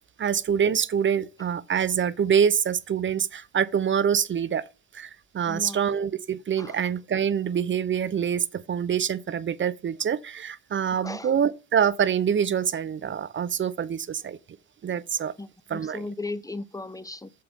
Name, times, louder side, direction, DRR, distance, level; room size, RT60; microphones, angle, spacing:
voice 1, 0.2-4.6 4.9-14.4 14.8-15.3 15.7-16.1, right 8 dB, 30° right, 0.5 m, -25 dB
voice 2, 5.5-6.0 6.6-6.7 11.0-11.3 15.4-17.3, left 2 dB, 10° left, 0.6 m, -36 dB
6.9 x 5.1 x 6.4 m
hypercardioid pair, 55°, 39 cm